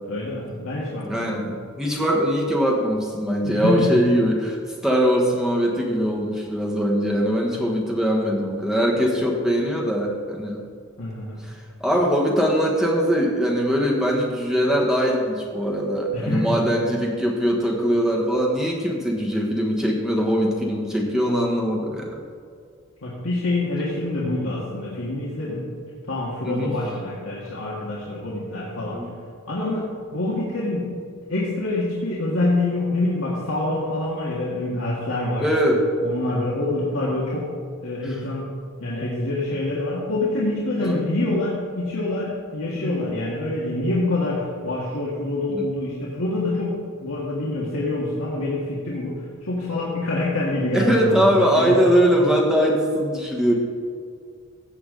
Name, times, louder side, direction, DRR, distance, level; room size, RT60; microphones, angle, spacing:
voice 1, 0.0-1.4 3.4-4.0 11.0-11.4 16.1-16.6 23.0-25.6 26.1-29.0 29.5-30.9 31.3-35.4 36.0-37.5 37.8-38.5 38.8-51.9, left 2 dB, 90° left, -6 dB, 1.8 m, -26 dB
voice 2, 1.1-10.6 11.5-22.1 26.4-26.8 28.9-29.1 35.4-35.8 38.0-38.2 40.8-41.0 42.7-43.1 45.5-45.7 50.7-53.5, equal, ahead, -2 dB, 1.3 m, -22 dB
15.0 x 8.0 x 3.9 m, 2.2 s
head